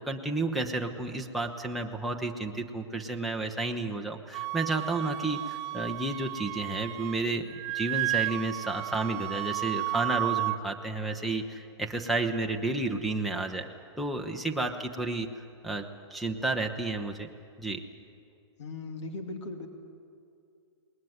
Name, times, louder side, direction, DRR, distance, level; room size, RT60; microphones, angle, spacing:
voice 1, 0.0-13.7 14.0-15.3 15.6-17.3 17.6-17.8, right 2 dB, ahead, 0 dB, 0.9 m, -31 dB
Wind instrument woodwind instrument, 4.3-7.2 7.5-10.6, right 17 dB, 30° right, 0.5 m, -33 dB
voice 2, 18.6-19.7, left 3 dB, 80° left, 5 dB, 2.8 m, -38 dB
20.0 x 19.5 x 9.4 m, 2.4 s
hypercardioid pair, 145°, 15 cm